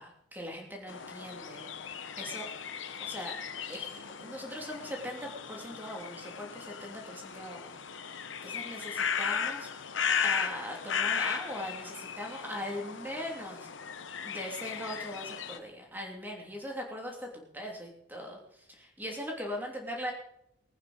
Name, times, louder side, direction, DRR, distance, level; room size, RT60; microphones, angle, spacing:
voice 1, 0.0-2.5 3.0-3.4 3.7-3.9 4.2-13.7 14.2-20.1, equal, 10° right, 0 dB, 3.0 m, -40 dB
sound 1, 0.9-15.6, left 7 dB, 80° left, 1.1 m, -36 dB
20.0 x 9.5 x 5.1 m, 0.75 s
head